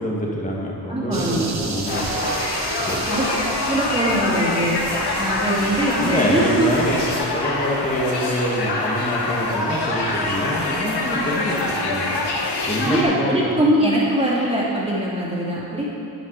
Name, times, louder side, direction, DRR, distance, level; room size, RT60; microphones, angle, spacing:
voice 1, 0.0-2.3 2.7-3.1 6.0-7.0 7.3-13.5, equal, 20° left, -4 dB, 1.9 m, -26 dB
voice 2, 0.9-1.5 3.1-3.3 3.6-4.8 5.2-6.7 12.9-15.9, right 1 dB, 15° right, -6 dB, 2.8 m, -22 dB
sound 1, 1.1-7.2, right 3 dB, 40° right, 1.1 m, -33 dB
sound 2, 1.9-13.0, left 2 dB, 75° left, 1.6 m, -25 dB
10.5 x 9.1 x 4.8 m, 2.6 s
wide cardioid pair, 105°, 40 cm